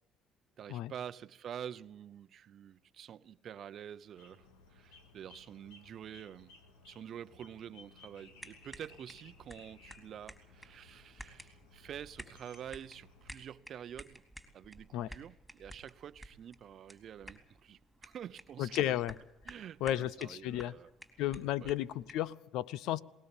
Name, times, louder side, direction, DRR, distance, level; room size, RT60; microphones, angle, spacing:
voice 1, 0.6-6.5 6.8-14.2 14.5-18.8 19.5-20.9 21.6-21.7, right 9 dB, 55° right, 0.7 m, -48 dB
sound 1, 4.2-13.3, left 3 dB, 90° left, 2.2 m, -60 dB
sound 2, 8.4-22.3, equal, 5° left, 3.9 m, -54 dB
voice 2, 18.6-19.1 19.8-20.7 21.2-23.0, left 13 dB, 75° left, 0.6 m, -33 dB
20.5 x 19.5 x 7.2 m
supercardioid pair, 75°, 0 cm